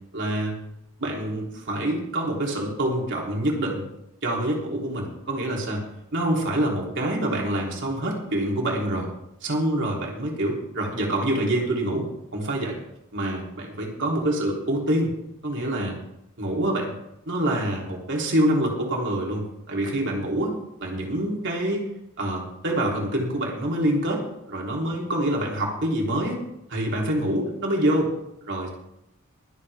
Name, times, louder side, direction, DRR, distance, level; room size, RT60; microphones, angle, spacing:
voice 1, 0.1-0.6 1.0-3.8 4.2-5.8 6.1-9.1 9.4-12.0 12.3-12.8 13.1-15.1 15.4-16.0 16.4-16.9 17.3-20.5 20.8-21.9 22.2-24.2 24.5-26.4 26.7-28.1 28.4-28.7, right 1 dB, 55° right, -2 dB, 3.4 m, -26 dB
23.5 x 7.9 x 3.6 m, 0.81 s
head